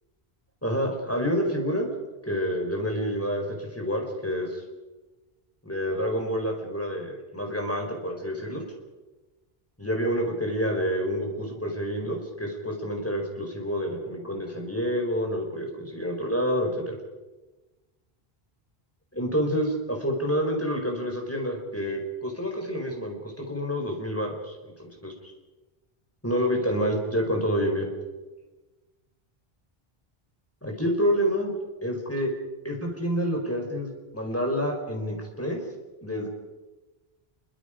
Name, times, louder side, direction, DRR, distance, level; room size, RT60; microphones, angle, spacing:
voice 1, 0.6-1.9 2.2-4.6 5.6-8.6 9.8-16.9 19.1-25.1 26.2-27.9 30.6-31.5 31.8-32.3 32.6-35.6 36.0-36.3, equal, 15° left, 1 dB, 4.4 m, -28 dB
27.0 x 24.0 x 5.1 m, 1.2 s
omnidirectional pair, 1.0 m